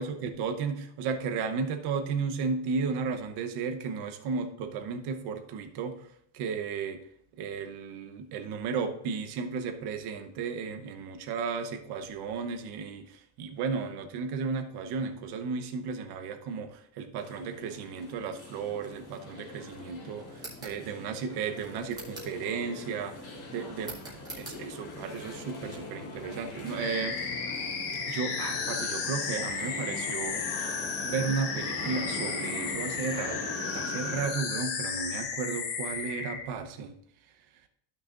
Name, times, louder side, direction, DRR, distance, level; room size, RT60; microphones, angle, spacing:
voice 1, 0.0-6.0 6.3-7.0 7.4-20.2 20.6-23.2 23.5-24.0 24.4-27.2 28.1-30.4 31.0-33.4 33.7-36.9, right 5 dB, 50° right, 6 dB, 1.0 m, -34 dB
sound 1, 17.2-34.3, left 2 dB, 35° left, 4.1 m, -42 dB
sound 2, 20.3-20.8 21.9-22.4 23.8-24.6, right 2 dB, 10° right, 2.0 m, -43 dB
sound 3, 26.8-36.4, left 5 dB, 60° left, 1.2 m, -34 dB
14.5 x 6.4 x 2.5 m, 0.71 s
cardioid pair, 170°, 48 cm